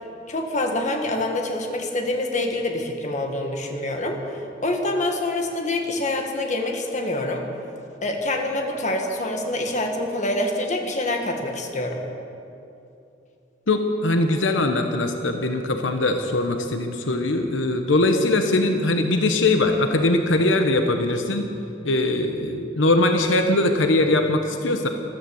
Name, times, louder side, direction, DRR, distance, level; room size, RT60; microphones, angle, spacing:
voice 1, 0.3-7.5 8.0-12.0, left 1 dB, 40° left, 3 dB, 1.6 m, -26 dB
voice 2, 13.7-21.5 21.8-24.9, left 2 dB, 85° left, 5 dB, 1.0 m, -21 dB
14.0 x 13.5 x 7.1 m, 2.7 s
head